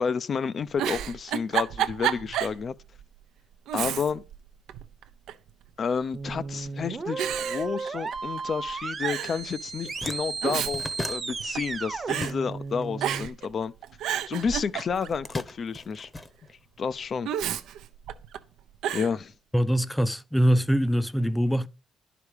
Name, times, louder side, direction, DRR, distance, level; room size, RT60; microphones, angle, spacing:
voice 1, 0.0-2.7 3.7-4.2 5.8-10.8 11.1-13.7 14.3-16.1 16.8-17.3 18.9-19.3, left 6 dB, 50° left, 0.5 m, -30 dB
Giggle, 0.7-2.6 3.0-3.1 3.7-4.4 4.7-5.5 6.3-6.7 7.2-8.4 8.7-8.8 9.0-9.4 10.2-11.8 12.1-12.3 13.0-13.5 13.8-15.2 17.3-18.4 18.8-19.1, right 10 dB, 85° right, 0.6 m, -30 dB
sound 1, 6.1-13.3, right 4 dB, 35° right, 0.9 m, -34 dB
sound 2, 9.3-9.4 9.7-12.8 13.1-14.3 14.9-16.9, left 2 dB, 25° left, 0.9 m, -38 dB
voice 2, 19.5-21.7, equal, 5° left, 0.5 m, -23 dB
11.0 x 5.0 x 4.9 m
cardioid pair, 90°, 0 cm